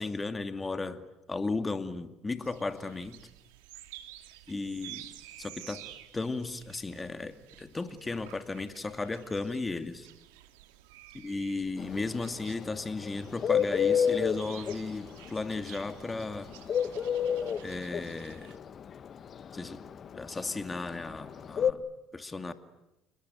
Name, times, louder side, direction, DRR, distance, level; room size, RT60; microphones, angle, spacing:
voice 1, 0.0-3.2 4.5-5.1 5.4-5.9 6.1-10.1 11.1-16.5 17.6-18.6 19.5-19.8 20.1-21.8 22.1-22.5, left 3 dB, 20° left, 9 dB, 2.4 m, -35 dB
sound 1, 2.4-18.6, right 14 dB, 90° right, 2.3 m, -52 dB
Bird, 11.8-21.7, left 7 dB, 45° left, 1.3 m, -28 dB
29.5 x 21.5 x 9.2 m, 0.92 s
supercardioid pair, 80°, 0 cm